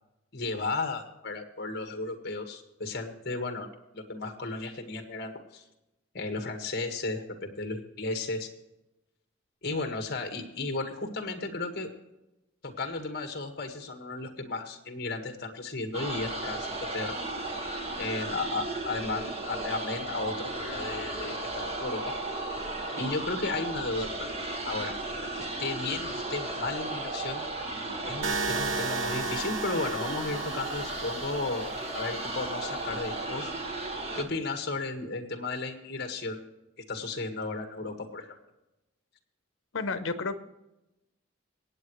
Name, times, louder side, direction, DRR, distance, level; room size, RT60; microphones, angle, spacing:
voice 1, 0.3-3.7 3.9-5.6 6.1-8.5 9.6-11.9 12.6-17.2 18.0-22.1 23.0-24.3 24.7-25.0 25.3-27.4 28.0-33.5 34.1-36.4 36.9-38.4, left 3 dB, 50° left, 5 dB, 1.7 m, -34 dB
sound 1, 15.9-34.2, right 2 dB, 30° right, 1.6 m, -35 dB
sound 2, 28.2-32.2, right 4 dB, 75° right, 0.9 m, -35 dB
voice 2, 39.7-40.4, left 3 dB, 75° left, 10 dB, 1.0 m, -31 dB
25.0 x 8.9 x 3.2 m, 0.95 s
head